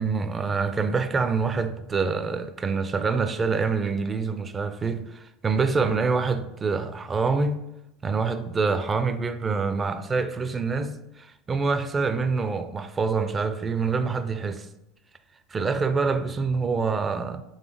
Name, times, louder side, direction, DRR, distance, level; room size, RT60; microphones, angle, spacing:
voice 1, 0.0-7.6 8.0-14.7 15.5-17.4, right 4 dB, 25° right, 0.4 m, -26 dB
3.9 x 3.4 x 3.3 m
hypercardioid pair, 80°, 0 cm